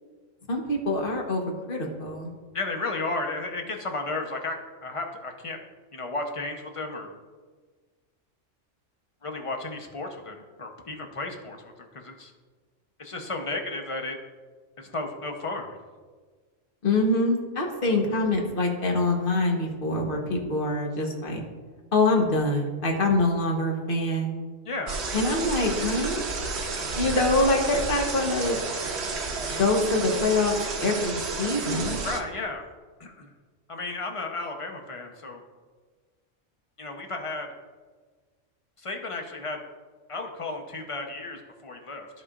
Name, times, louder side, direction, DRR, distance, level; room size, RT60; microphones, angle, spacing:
voice 1, 0.5-2.3 16.8-21.4 21.9-24.3 25.1-26.2 26.9-28.6 29.5-32.0, left 2 dB, 45° left, 1 dB, 1.3 m, -25 dB
voice 2, 2.5-4.6 4.8-5.6 5.9-7.1 9.2-12.3 13.0-14.2 14.8-15.8 24.6-25.0 32.0-32.7 33.0-33.3 33.7-35.4 36.8-37.5 38.8-39.6 40.1-42.1, left 3 dB, 30° left, 3 dB, 0.8 m, -33 dB
sound 1, 24.9-32.2, right 4 dB, 60° right, 1.1 m, -31 dB
14.5 x 5.0 x 2.5 m, 1.5 s
omnidirectional pair, 1.3 m